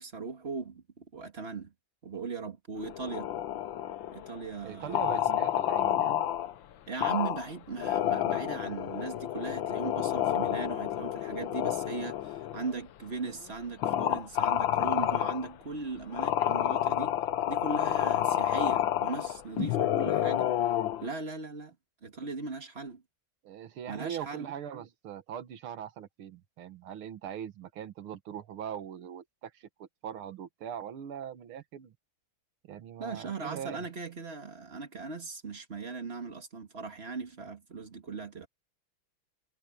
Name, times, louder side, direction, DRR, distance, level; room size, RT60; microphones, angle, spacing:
voice 1, 0.0-1.7 2.0-3.3 4.1-5.2 6.9-17.2 17.5-20.5 21.0-21.7 22.0-23.0 23.9-24.5 33.0-38.5, right 4 dB, 30° right, 1.9 m, -38 dB
sound 1, 2.8-4.4 4.9-6.5 7.0-7.5 7.8-12.7 13.3-13.4 13.8-15.5 16.1-21.0, left 11 dB, 70° left, 1.6 m, -29 dB
voice 2, 4.6-6.3 23.4-32.0 32.6-33.9, right 9 dB, 85° right, 2.1 m, -41 dB
omnidirectional pair, 2.3 m